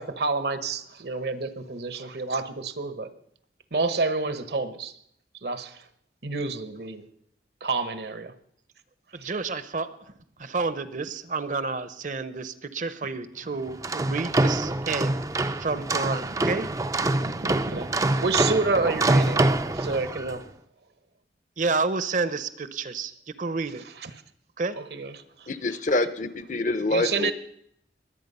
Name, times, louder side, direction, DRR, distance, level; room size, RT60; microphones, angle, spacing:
voice 1, 0.0-3.1 3.7-4.9 5.4-5.8 6.2-7.1 7.6-8.3 17.7-19.5 19.7-20.4 24.0-24.1 24.7-25.5 26.9-27.3, right 3 dB, 65° right, 1.0 m, -29 dB
voice 2, 9.1-9.9 10.4-15.1 15.5-16.7 17.1-17.9 19.0-19.4 21.6-23.1 23.4-23.8 24.6-24.8, right 4 dB, 45° right, 0.8 m, -30 dB
sound 1, 13.7-20.4, right 2 dB, 20° right, 0.5 m, -25 dB
voice 3, 25.5-27.3, left 2 dB, 45° left, 0.7 m, -26 dB
22.0 x 8.8 x 5.5 m
head